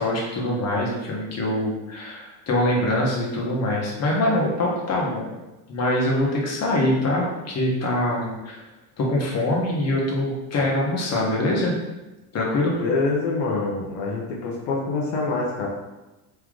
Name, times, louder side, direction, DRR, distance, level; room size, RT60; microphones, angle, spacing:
voice 1, 0.0-5.4 5.7-8.6 9.0-11.7 12.3-12.7, left 1 dB, 40° left, -3 dB, 1.2 m, -24 dB
voice 2, 12.8-15.7, left 3 dB, 75° left, -3 dB, 0.9 m, -25 dB
3.3 x 3.1 x 3.7 m, 1.1 s
cardioid pair, 115°, 41 cm